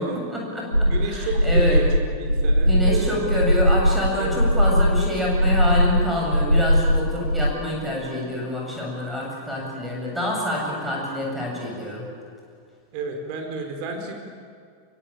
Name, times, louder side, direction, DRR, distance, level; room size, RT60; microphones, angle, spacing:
voice 1, 0.3-1.8 2.7-12.0, left 1 dB, 5° right, -2 dB, 7.8 m, -27 dB
sound 1, 0.7-7.5, equal, 90° right, 0.7 m, -20 dB
voice 2, 0.8-3.4 4.2-4.4 12.9-14.1, right 4 dB, 45° right, 3 dB, 4.6 m, -31 dB
24.0 x 23.5 x 8.9 m, 2.2 s
figure-of-eight pair, 90°, 0 cm